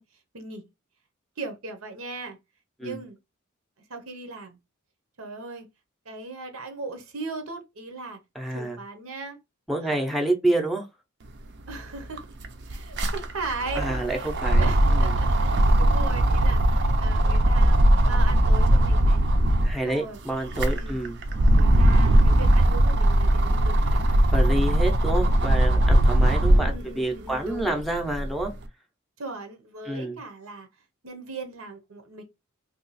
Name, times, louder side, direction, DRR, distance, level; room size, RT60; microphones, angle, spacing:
voice 1, 0.3-0.7 1.4-2.4 2.8-3.2 3.9-4.6 5.2-5.7 6.0-8.2 8.5-9.4 9.8-10.1 11.7-12.2 12.7-17.8 18.0-19.2 19.9-20.2 20.7-21.0 21.5-24.5 25.2-25.4 26.5-27.8 29.2-30.7 31.0-32.2, right 3 dB, 85° right, 0.9 m, -38 dB
voice 2, 8.3-8.8 9.7-10.9 13.8-15.1 19.6-21.2 24.3-28.5 29.9-30.2, right 1 dB, ahead, 0.6 m, -28 dB
sound 1, 11.7-11.8 12.0-19.8 20.3-26.8 27.3-28.5, right 1 dB, 55° right, 0.5 m, -20 dB
2.9 x 2.3 x 3.9 m
head